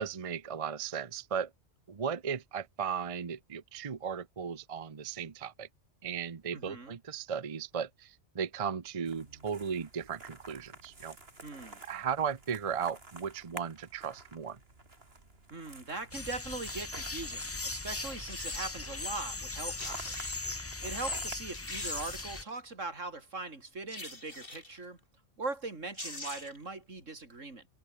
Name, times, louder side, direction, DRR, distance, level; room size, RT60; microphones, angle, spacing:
voice 1, 0.0-1.5 1.9-5.7 6.0-11.2 11.9-14.6, right 7 dB, 30° right, 0.8 m, -36 dB
voice 2, 6.5-7.0 11.4-11.8 15.5-25.0 25.4-27.7, right 3 dB, 80° right, 3.9 m, -41 dB
sound 1, 9.0-21.4, right 2 dB, 50° right, 3.7 m, -51 dB
sound 2, 16.1-22.4, left 3 dB, 20° left, 0.4 m, -38 dB
sound 3, 18.3-18.8 19.5-19.6 19.8-20.6 21.1-21.2 21.5-22.6 23.9-24.8 25.6-25.7 25.9-26.7 27.0-27.1, left 2 dB, 45° left, 4.9 m, -44 dB
omnidirectional pair, 1.3 m